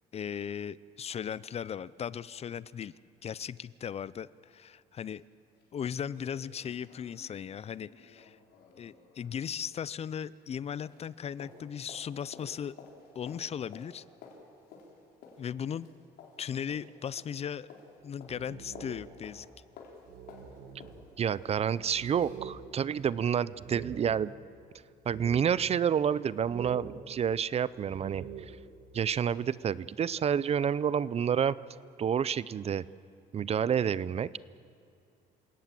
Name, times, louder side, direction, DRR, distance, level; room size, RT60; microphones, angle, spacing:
voice 1, 0.1-2.9 3.2-5.2 5.7-8.4 8.8-12.7 13.1-14.0 15.4-15.9 16.4-17.7 18.0-19.5, left 8 dB, 40° left, 19 dB, 0.5 m, -37 dB
sound 1, 5.2-5.3 5.6-5.7 6.0-10.6 10.8-22.5 22.8-22.9, left 4 dB, 75° left, 4.4 m, -54 dB
sound 2, 18.0-19.4 19.7-19.8 20.1-24.6 25.1-25.9 26.4-28.7, right 6 dB, 75° right, 2.2 m, -46 dB
voice 2, 21.2-24.3 25.1-28.2 28.9-31.6 32.0-32.9 33.3-34.4, right 8 dB, 40° right, 19 dB, 0.5 m, -29 dB
27.5 x 17.5 x 7.7 m, 2.3 s
cardioid pair, 110°, 17 cm